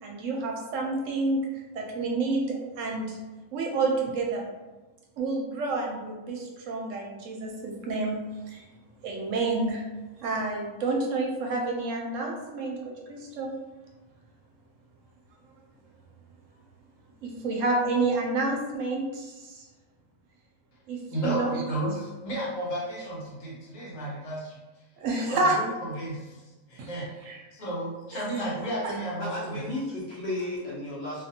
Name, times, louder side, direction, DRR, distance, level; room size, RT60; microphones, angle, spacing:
voice 1, 0.0-3.2 3.5-4.4 5.2-8.7 9.0-9.8 10.2-13.5 17.2-19.7 20.9-21.5 25.0-25.6 26.8-26.9 27.2-27.4 28.1-28.5 28.8-28.9, right 3 dB, 70° right, 0 dB, 0.9 m, -29 dB
voice 2, 21.1-24.6 25.3-25.7 26.0-27.1 27.5-29.7, right 1 dB, 75° left, -5 dB, 1.3 m, -33 dB
voice 3, 29.2-31.2, left 1 dB, 50° left, -8 dB, 1.2 m, -33 dB
2.6 x 2.5 x 2.7 m, 1.2 s
omnidirectional pair, 1.4 m